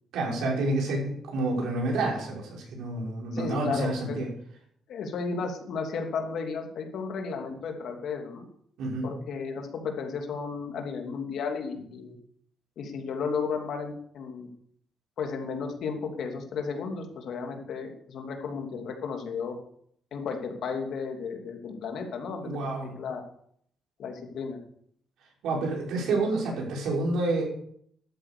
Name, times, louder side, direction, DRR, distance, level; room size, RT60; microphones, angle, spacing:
voice 1, 0.1-4.3 8.8-9.1 22.4-22.9 25.4-27.4, right 2 dB, 80° right, -2 dB, 5.7 m, -29 dB
voice 2, 3.3-4.2 4.9-8.4 9.0-12.2 12.8-14.5 15.2-19.5 20.1-22.5 22.8-23.2 24.0-24.6, left 5 dB, 70° left, 3 dB, 2.9 m, -33 dB
12.5 x 9.0 x 6.9 m, 0.66 s
cardioid pair, 90°, 0 cm